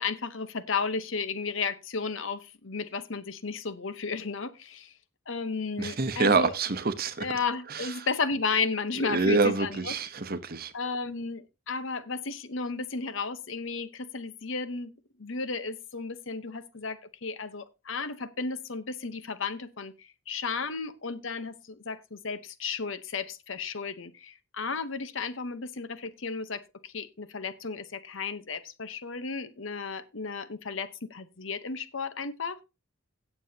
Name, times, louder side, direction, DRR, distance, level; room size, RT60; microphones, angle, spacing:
voice 1, 0.0-4.9 5.3-6.5 7.2-10.0 10.7-14.9 15.2-32.6, left 4 dB, 65° left, 0.9 m, -33 dB
voice 2, 5.8-7.3 7.7-7.9 9.0-10.7, right 4 dB, 45° right, 0.9 m, -26 dB
17.0 x 7.0 x 2.8 m
head